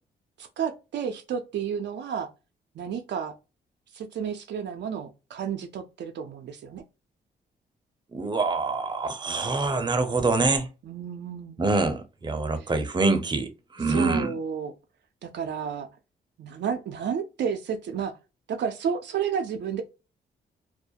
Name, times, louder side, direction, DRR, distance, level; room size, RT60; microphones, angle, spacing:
voice 1, 0.4-2.3 2.7-3.3 3.9-6.8 10.8-11.6 12.6-12.7 13.9-14.7 15.2-15.9 16.4-18.2 18.5-19.8, right 7 dB, 65° right, 0.4 m, -31 dB
voice 2, 8.1-10.7 11.6-14.3, right 3 dB, 25° right, 0.6 m, -25 dB
2.3 x 2.1 x 2.7 m
cardioid pair, 60°, 19 cm